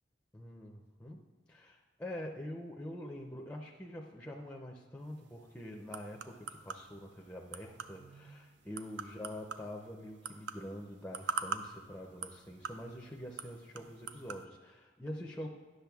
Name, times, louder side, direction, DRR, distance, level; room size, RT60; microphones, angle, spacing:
voice 1, 0.3-1.2 1.5-15.5, left 1 dB, 5° left, 0 dB, 0.4 m, -45 dB
sound 1, 5.0-14.5, right 6 dB, 85° right, 0.4 m, -45 dB
10.0 x 6.4 x 2.3 m, 1.4 s
head